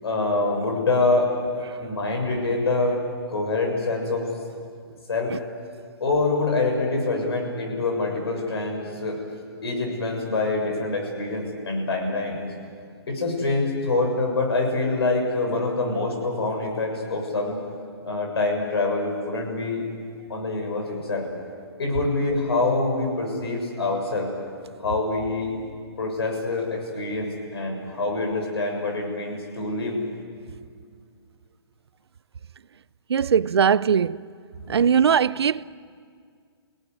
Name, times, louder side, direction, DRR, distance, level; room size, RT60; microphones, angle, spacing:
voice 1, 0.0-1.3 1.8-3.0 3.3-4.3 5.1-5.3 6.0-9.2 9.6-12.4 13.1-17.6 18.0-19.8 20.3-21.3 21.8-24.3 24.8-25.6 26.0-30.0 34.6-34.9, left 3 dB, 70° left, 7.1 m, -25 dB
voice 2, 33.1-34.2 34.7-35.6, right 7 dB, 75° right, 0.6 m, -20 dB
27.5 x 18.0 x 9.7 m
hypercardioid pair, 175°, 14 cm